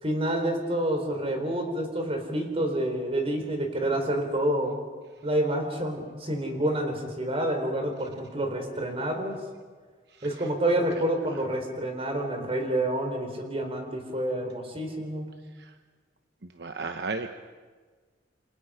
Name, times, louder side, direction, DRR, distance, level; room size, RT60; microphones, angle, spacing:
voice 1, 0.0-4.7 5.2-9.4 10.2-15.3, right 1 dB, 35° right, 4 dB, 4.2 m, -28 dB
voice 2, 16.4-17.4, right 3 dB, 65° right, 7 dB, 1.0 m, -35 dB
29.0 x 26.0 x 5.1 m, 1.4 s
head